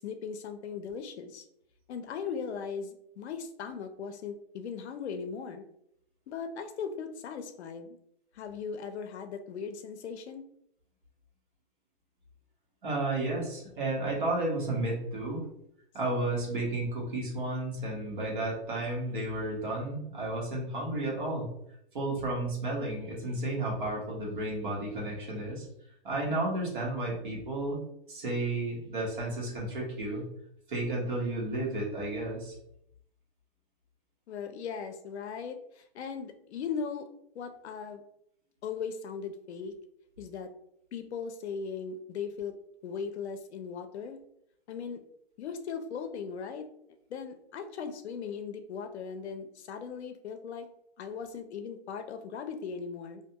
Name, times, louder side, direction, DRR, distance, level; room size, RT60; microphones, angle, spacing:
voice 1, 0.0-1.5 1.9-5.7 6.3-8.0 8.3-10.4 34.3-37.1 37.3-38.0 38.6-39.7 40.2-40.5 40.9-42.5 42.8-44.2 44.7-45.0 45.4-46.7 47.1-50.7 51.0-53.2, left 6 dB, 85° left, 6 dB, 0.5 m, -38 dB
voice 2, 12.8-15.4 15.9-21.5 21.9-25.7 26.0-27.8 28.1-30.2 30.7-32.5, right 2 dB, 50° right, -4 dB, 1.1 m, -32 dB
2.6 x 2.2 x 2.7 m, 0.73 s
hypercardioid pair, 175°, 32 cm